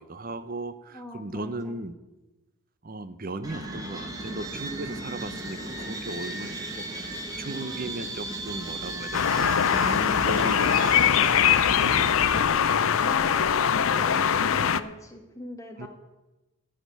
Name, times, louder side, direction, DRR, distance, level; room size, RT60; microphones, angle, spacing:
voice 1, 0.0-1.9 2.8-6.5 6.8-6.9 7.4-12.1 15.8-15.9, right 2 dB, 40° right, 13 dB, 0.7 m, -36 dB
voice 2, 0.9-1.7 13.0-15.9, left 2 dB, 15° left, 2 dB, 1.5 m, -40 dB
sound 1, 3.4-12.4, right 2 dB, 15° right, 1.3 m, -36 dB
sound 2, 9.1-14.8, left 8 dB, 70° left, 0.5 m, -22 dB
14.0 x 5.1 x 9.1 m, 1.1 s
head